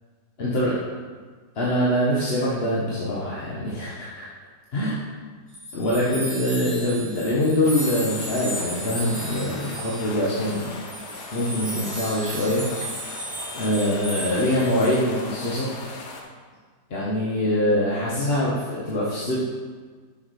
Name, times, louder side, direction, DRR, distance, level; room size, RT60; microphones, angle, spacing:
voice 1, 0.4-0.8 1.5-4.3 4.7-4.9 5.7-10.7 11.3-12.6 13.5-15.7 16.9-19.4, left 1 dB, 40° left, -7 dB, 1.1 m, -24 dB
sound 1, 5.5-15.0, right 1 dB, 35° right, 2.5 m, -35 dB
sound 2, 7.6-16.2, left 3 dB, 75° left, 1.5 m, -38 dB
6.4 x 6.1 x 4.8 m, 1.5 s
omnidirectional pair, 1.8 m